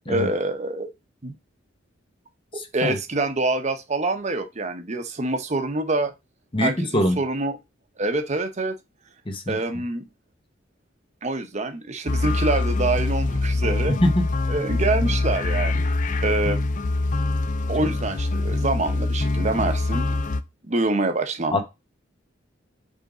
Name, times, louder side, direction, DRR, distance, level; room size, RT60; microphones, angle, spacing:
voice 1, 0.1-0.9 1.2-1.4 2.7-6.1 6.6-7.6 8.0-8.8 9.5-10.1 11.2-13.9 14.5-15.9 16.2-16.6 17.7-20.0 20.6-21.6, right 2 dB, 40° right, 0.9 m, -26 dB
voice 2, 2.5-3.0 6.5-7.2 9.3-9.6 13.9-14.3 21.5-21.6, left 1 dB, 25° left, 1.0 m, -23 dB
sound 1, 12.1-20.4, left 2 dB, 45° left, 0.5 m, -24 dB
5.3 x 3.6 x 4.9 m
head